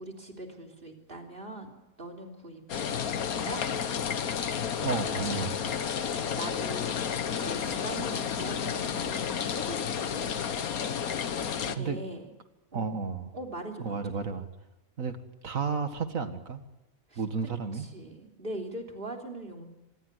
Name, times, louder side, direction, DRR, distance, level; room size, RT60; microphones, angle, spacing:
voice 1, 0.0-3.6 6.1-10.3 11.5-12.3 12.7-13.0 13.3-14.0 17.1-17.2 17.9-19.7, right 1 dB, 40° right, 2 dB, 3.6 m, -41 dB
sound 1, 2.7-11.8, left 7 dB, 85° left, 1.6 m, -31 dB
voice 2, 4.8-5.7 11.7-12.0 12.7-13.3 13.8-14.5 15.0-15.2 15.4-16.6 17.2-17.9, right 5 dB, 70° right, 8 dB, 2.2 m, -32 dB
26.0 x 19.5 x 8.2 m, 1.0 s
omnidirectional pair, 1.5 m